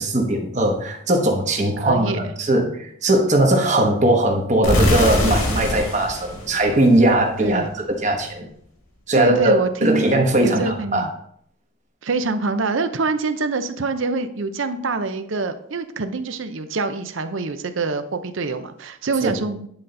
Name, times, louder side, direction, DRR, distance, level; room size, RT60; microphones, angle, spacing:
voice 1, 0.0-2.1 2.4-7.6 8.0-8.5 9.1-9.5 9.8-11.1 19.2-19.3, right 1 dB, 35° right, 2 dB, 1.1 m, -19 dB
voice 2, 1.8-2.3 7.4-7.7 9.1-10.0 10.4-11.1 12.0-19.7, right 3 dB, 65° right, 9 dB, 0.6 m, -25 dB
sound 1, 4.6-7.5, left 1 dB, 85° left, 1.7 m, -23 dB
9.7 x 4.2 x 3.8 m, 0.68 s
head